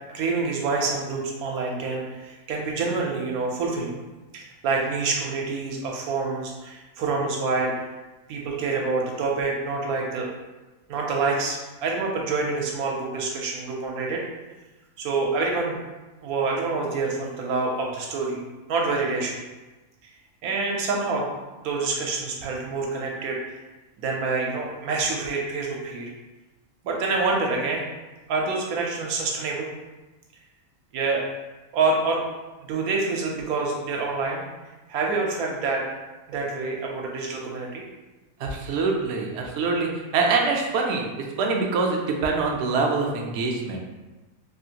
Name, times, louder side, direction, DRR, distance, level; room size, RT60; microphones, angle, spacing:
voice 1, 0.1-3.9 4.3-7.7 8.3-10.3 10.9-14.2 15.0-15.8 16.2-18.4 18.7-19.4 20.4-21.3 21.6-23.6 24.0-26.1 26.8-27.8 28.3-29.7 30.9-31.2 31.7-32.2 32.6-34.4 34.9-35.8 36.3-37.8, right 3 dB, 85° right, 0 dB, 1.1 m, -27 dB
voice 2, 38.4-43.8, right 4 dB, 65° right, 0 dB, 0.7 m, -25 dB
3.1 x 2.4 x 2.7 m, 1.1 s
omnidirectional pair, 1.5 m